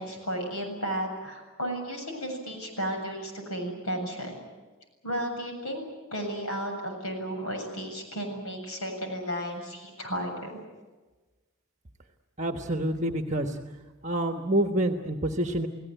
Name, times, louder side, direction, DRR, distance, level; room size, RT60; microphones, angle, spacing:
voice 1, 0.0-4.4 5.0-5.8 6.1-10.6, equal, 90° left, 4 dB, 7.5 m, -33 dB
voice 2, 12.4-13.6 14.0-15.7, right 1 dB, 35° right, 5 dB, 1.3 m, -27 dB
29.5 x 17.5 x 9.2 m, 1.2 s
head